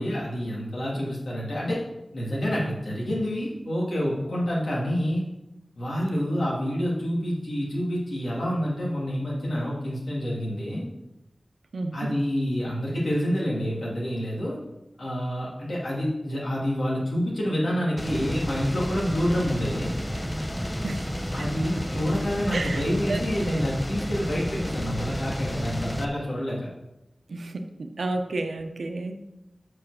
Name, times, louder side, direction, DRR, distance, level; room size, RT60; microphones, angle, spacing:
voice 1, 0.0-1.8 2.1-5.2 5.8-10.8 11.9-14.6 15.0-19.9 21.3-26.7, equal, 85° left, -5 dB, 2.7 m, -28 dB
voice 2, 11.7-12.1 20.8-21.5 22.5-22.8 23.1-23.5 27.3-29.2, right 2 dB, 90° right, 6 dB, 0.7 m, -32 dB
sound 1, 18.0-26.0, equal, 10° left, 0.8 m, -31 dB
6.3 x 4.9 x 6.4 m, 0.93 s
wide cardioid pair, 45°, 0 cm